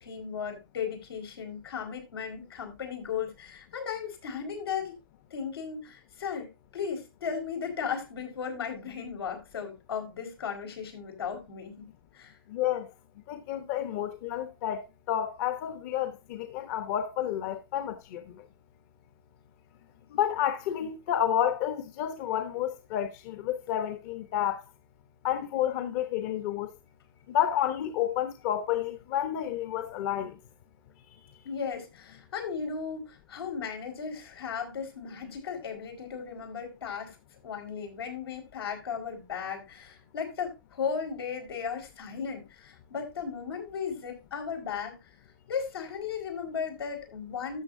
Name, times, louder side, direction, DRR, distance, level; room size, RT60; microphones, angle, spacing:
voice 1, 0.0-5.0 5.3-11.8 12.1-12.3 31.4-37.2 37.4-45.0 45.5-47.6, left 6 dB, 85° left, 4.9 m, -36 dB
voice 2, 12.5-12.9 13.3-18.4 20.1-24.6 25.2-26.7 27.3-30.4, left 10 dB, 45° left, 1.0 m, -30 dB
13.0 x 7.5 x 2.7 m
hypercardioid pair, 145°, 12 cm